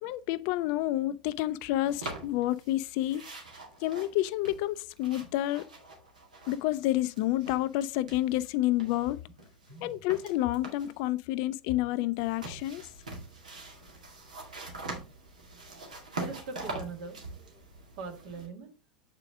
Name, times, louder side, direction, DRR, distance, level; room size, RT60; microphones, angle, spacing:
voice 1, 0.0-3.2 3.8-5.7 6.5-9.2 9.8-12.9, left 15 dB, 55° left, 0.4 m, -29 dB
sound 1, 1.9-2.8 3.1-6.8 7.1-8.5 8.8-11.0 12.2-18.5, right 2 dB, 85° right, 1.9 m, -43 dB
voice 2, 9.7-10.0 16.2-17.6 18.0-18.7, right 4 dB, 65° right, 1.8 m, -42 dB
7.4 x 4.9 x 3.6 m
hypercardioid pair, 85°, 4 cm